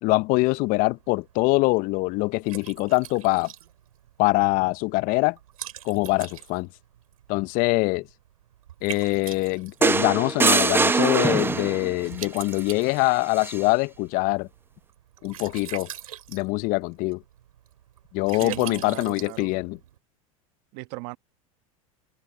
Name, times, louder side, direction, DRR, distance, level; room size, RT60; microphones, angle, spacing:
voice 1, 0.0-3.5 4.2-5.4 5.8-6.7 7.3-8.1 8.8-14.5 15.2-15.9 16.3-17.2 18.1-19.8, left 24 dB, 50° left, 0.8 m, -24 dB
Liquid, 0.5-20.0, right 11 dB, 75° right, 4.6 m, -44 dB
sound 1, 9.8-11.9 13.3-13.6, right 4 dB, 10° right, 0.8 m, -22 dB
voice 2, 18.3-19.5 20.7-21.2, right 29 dB, 55° right, 1.5 m, -36 dB
open air
hypercardioid pair, 90°, 18 cm